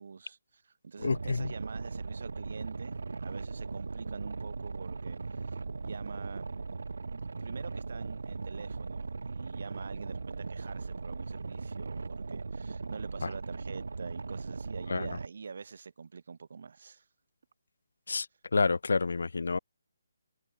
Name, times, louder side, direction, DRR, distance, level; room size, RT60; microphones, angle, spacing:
voice 1, 0.0-5.2 5.8-6.5 7.1-17.0, right 5 dB, 55° right, 3.5 m, -45 dB
voice 2, 1.0-1.5 14.9-15.1 18.1-18.3 18.5-19.6, left 4 dB, 80° left, 2.3 m, -28 dB
Boat Water vehicle, 1.0-15.3, right 4 dB, 80° right, 3.3 m, -39 dB
hypercardioid pair, 170°, 0 cm